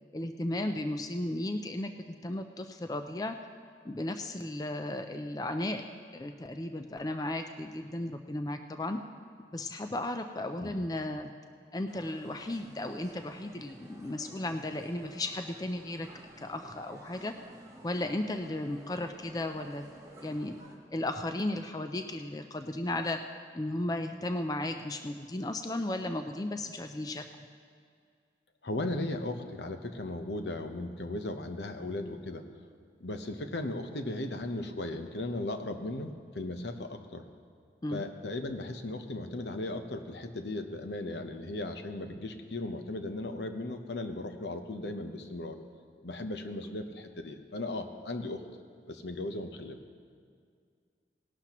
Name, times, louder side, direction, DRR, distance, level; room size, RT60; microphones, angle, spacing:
voice 1, 0.1-3.4 3.8-5.8 6.1-9.0 9.5-11.3 11.7-16.1 16.4-17.3 17.8-19.9 20.2-20.6 20.9-23.2 23.5-27.3 37.8-38.1, left 1 dB, 20° left, 7 dB, 0.4 m, -35 dB
sound 1, 11.9-20.8, right 1 dB, 20° right, 1.3 m, -53 dB
voice 2, 28.6-32.5 33.0-37.2 37.9-45.7 46.0-48.4 48.9-49.8, left 2 dB, 80° left, 6 dB, 0.9 m, -37 dB
18.5 x 11.5 x 3.0 m, 2.2 s
head